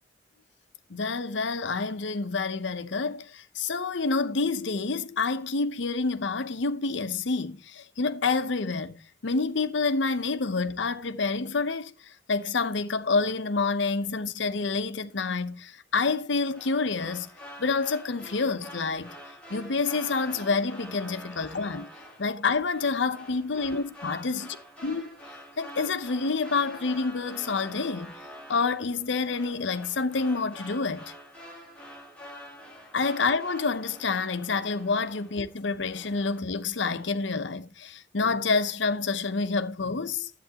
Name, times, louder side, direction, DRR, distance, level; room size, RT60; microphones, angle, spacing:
voice 1, 0.9-17.3 17.6-19.1 19.5-21.9 22.2-24.5 24.8-25.1 25.6-28.1 28.5-31.0 32.9-40.3, left 4 dB, 70° left, 0.8 m, -28 dB
sound 1, 16.5-35.6 35.9-36.4, equal, 5° left, 3.1 m, -46 dB
11.0 x 8.4 x 2.8 m
head